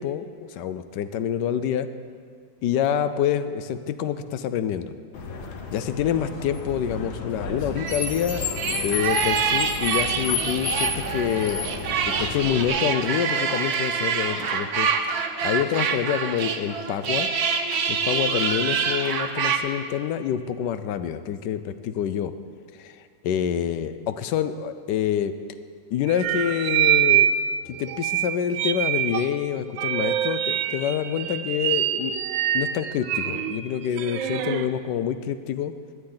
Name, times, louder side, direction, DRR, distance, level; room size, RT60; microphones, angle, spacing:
voice 1, 0.0-1.9 2.6-4.9 5.7-11.6 12.1-17.3 17.9-22.3 22.8-25.3 25.9-27.4 27.7-32.1 32.5-35.7, left 9 dB, 70° left, 12 dB, 1.1 m, -27 dB
Car, 5.1-12.7, left 4 dB, 90° left, 2.0 m, -31 dB
sound 1, 7.8-19.6, right 6 dB, 60° right, 1.2 m, -26 dB
sound 2, 26.1-27.5 27.7-29.3 29.8-34.7, right 11 dB, 80° right, 1.3 m, -24 dB
17.5 x 11.5 x 3.9 m, 2.1 s
omnidirectional pair, 2.1 m